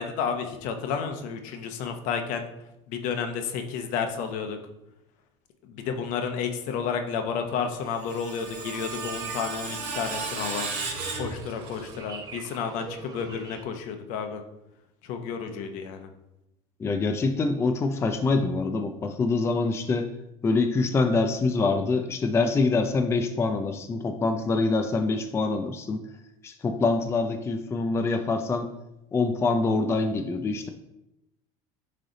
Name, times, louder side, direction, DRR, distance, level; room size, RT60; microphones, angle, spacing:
voice 1, 0.0-2.5 2.9-4.6 5.6-10.7 11.2-14.4 15.0-16.1, left 6 dB, 70° left, 6 dB, 0.9 m, -31 dB
Screech, 7.7-12.0, right 4 dB, 65° right, 1.7 m, -35 dB
sound 1, 8.4-13.6, right 4 dB, 25° right, 0.9 m, -44 dB
voice 2, 16.8-20.1 20.4-26.0 26.4-28.7 29.1-30.7, left 3 dB, 20° left, 6 dB, 0.4 m, -25 dB
9.3 x 3.3 x 3.9 m, 0.88 s
cardioid pair, 135°, 14 cm